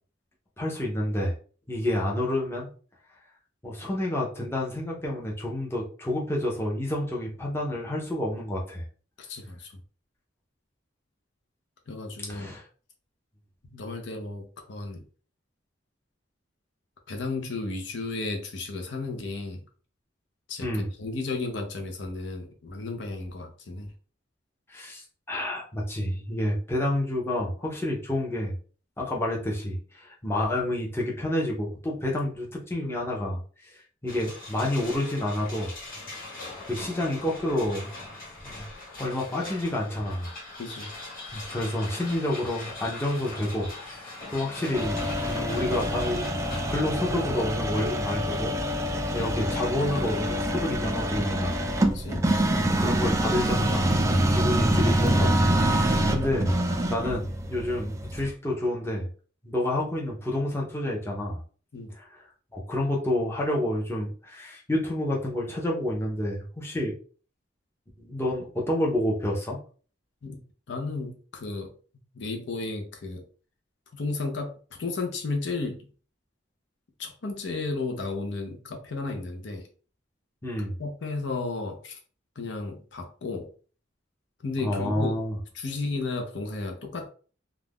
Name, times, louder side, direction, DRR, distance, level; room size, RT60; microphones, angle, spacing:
voice 1, 0.6-1.3 1.7-2.7 3.6-8.9 12.3-12.6 20.6-20.9 24.7-28.6 29.0-35.7 36.7-38.0 38.4-38.7 39.0-40.3 41.3-46.2 46.7-48.5 49.1-51.6 52.5-56.6 56.9-59.1 59.4-61.4 61.9-62.2 62.5-66.9 68.0-69.6 80.4-80.8 84.6-85.4, left 1 dB, 15° left, -3 dB, 0.7 m, -29 dB
voice 2, 9.2-9.7 11.9-12.5 13.7-15.0 17.1-19.6 20.5-23.9 40.6-40.9 51.9-52.3 61.7-61.9 70.2-70.4 70.7-71.7 72.1-73.2 73.9-75.9 77.0-79.7 80.8-82.0 82.4-83.5 84.4-85.2 85.5-87.1, left 3 dB, 65° left, 4 dB, 0.6 m, -33 dB
sound 1, 34.1-46.8, left 2 dB, 50° left, 1.3 m, -41 dB
sound 2, 44.7-58.3, right 1 dB, 15° right, 0.3 m, -26 dB
2.4 x 2.2 x 3.4 m, 0.40 s
head